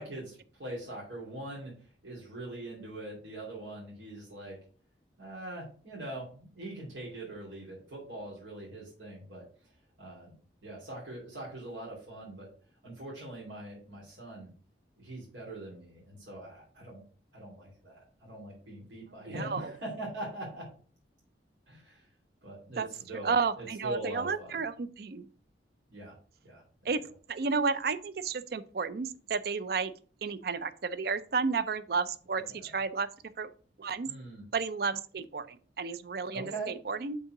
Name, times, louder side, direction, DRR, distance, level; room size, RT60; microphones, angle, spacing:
voice 1, 0.0-4.6 5.2-9.4 10.0-12.5 12.8-14.5 15.0-17.0 17.3-20.7 21.7-22.1 22.4-24.6 25.9-26.1 26.4-26.6 32.3-32.7 34.0-34.4 36.3-36.7, right 1 dB, 85° right, -6 dB, 2.5 m, -42 dB
voice 2, 19.3-19.7 22.8-22.9 23.2-25.3 26.8-27.0 27.3-29.9 30.2-33.1 33.4-33.5 33.8-34.1 34.5-37.2, right 5 dB, 55° right, 14 dB, 0.4 m, -32 dB
5.4 x 3.7 x 5.9 m, 0.42 s
head